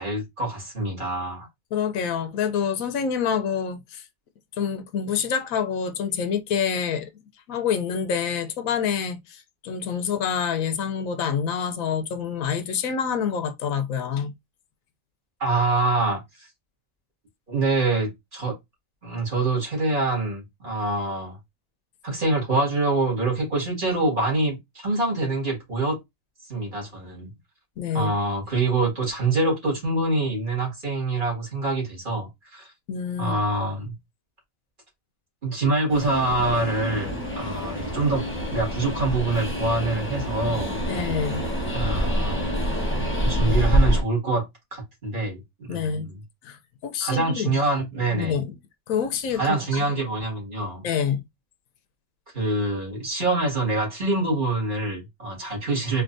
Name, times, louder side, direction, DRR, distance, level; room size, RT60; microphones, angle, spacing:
voice 1, 0.0-1.5 15.4-16.5 17.5-18.6 19.0-21.4 22.0-26.0 26.5-27.3 27.9-32.7 33.2-33.9 35.4-38.2 38.5-40.8 41.7-42.5 42.9-46.2 47.0-48.3 49.3-50.9 52.3-56.0, right 2 dB, 40° right, 2.1 m, -25 dB
voice 2, 1.7-4.0 4.6-7.1 7.5-14.3 27.8-28.1 32.9-33.4 40.8-41.4 45.7-46.1 46.4-46.6 46.8-47.5 48.1-48.5 48.9-49.6 50.8-51.2, left 7 dB, 90° left, 1.1 m, -27 dB
Train, 35.9-44.0, equal, 10° left, 0.9 m, -26 dB
4.5 x 2.8 x 2.6 m
omnidirectional pair, 1.4 m